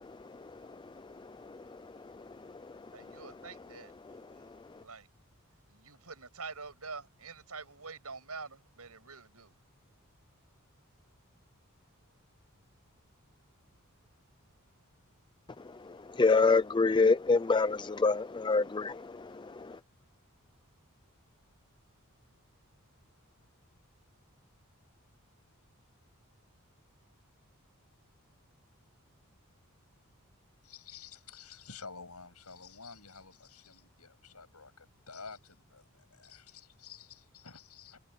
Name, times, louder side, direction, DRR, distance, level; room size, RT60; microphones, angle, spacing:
voice 1, 2.9-3.9 4.8-5.1 5.7-9.6, right 4 dB, 85° right, 6.9 m, -46 dB
voice 2, 16.2-19.0, left 4 dB, 20° left, 0.5 m, -25 dB
voice 3, 30.6-38.0, left 5 dB, 85° left, 7.5 m, -50 dB
head